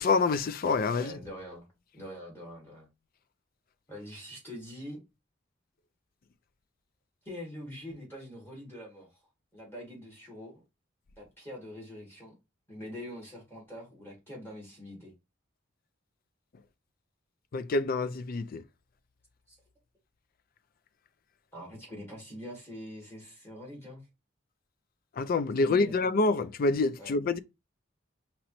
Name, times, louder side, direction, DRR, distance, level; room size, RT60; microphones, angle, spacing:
voice 1, 0.0-1.1 17.5-18.6 25.2-27.4, left 3 dB, 50° left, 0.4 m, -27 dB
voice 2, 0.9-1.7 1.9-2.9 3.9-5.0 7.2-9.2 9.5-10.6 11.2-12.3 12.7-15.1 19.5-19.6 21.5-24.1 25.6-26.0 27.0-27.1, equal, 10° left, 2.3 m, -44 dB
5.2 x 2.9 x 3.0 m
head